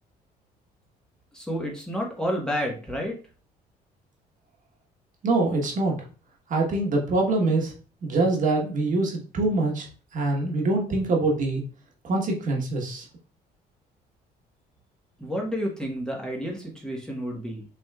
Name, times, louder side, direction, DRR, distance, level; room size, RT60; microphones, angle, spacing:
voice 1, 1.3-3.2 15.2-17.6, equal, 5° left, -1 dB, 1.2 m, -30 dB
voice 2, 5.2-6.0 6.5-7.7 8.0-9.9 10.1-11.6 12.0-13.1, right 2 dB, 50° right, 0 dB, 1.4 m, -24 dB
6.0 x 3.6 x 2.3 m, 0.38 s
cardioid pair, 110°, 17 cm